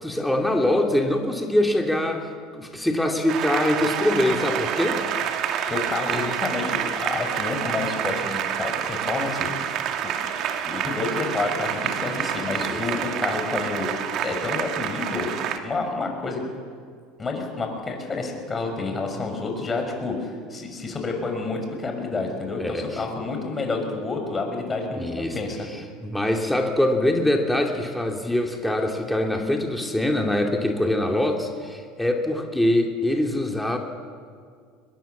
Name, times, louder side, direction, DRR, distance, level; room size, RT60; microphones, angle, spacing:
voice 1, 0.0-5.0 12.7-12.8 22.6-23.0 25.0-25.4 26.0-33.8, left 1 dB, 5° left, 2 dB, 2.8 m, -23 dB
Applause, 3.3-15.6, right 9 dB, 55° right, 2.2 m, -28 dB
voice 2, 5.7-9.5 10.6-13.9 14.2-15.3 15.6-16.4 17.2-25.7, left 3 dB, 25° left, 3 dB, 6.4 m, -29 dB
23.0 x 21.5 x 7.3 m, 2.1 s
hypercardioid pair, 80°, 0 cm